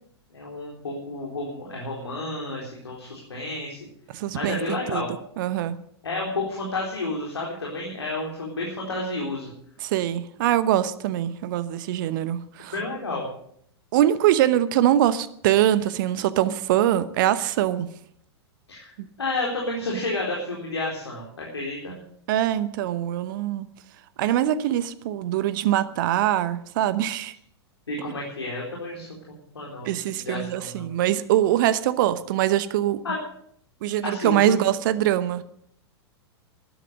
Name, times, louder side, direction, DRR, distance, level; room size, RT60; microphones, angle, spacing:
voice 1, 0.3-3.8 4.3-5.1 6.0-9.5 12.7-13.2 18.7-18.9 19.2-22.0 27.9-29.1 29.5-30.9 33.0-33.2 34.0-34.6, left 2 dB, 75° left, 4.1 m, -31 dB
voice 2, 4.1-5.0 5.4-5.8 9.8-12.7 13.9-17.9 22.3-23.7 24.2-27.3 29.8-33.0 33.8-35.4, right 12 dB, 50° right, 0.9 m, -23 dB
13.0 x 11.5 x 7.9 m
figure-of-eight pair, 95°, 14 cm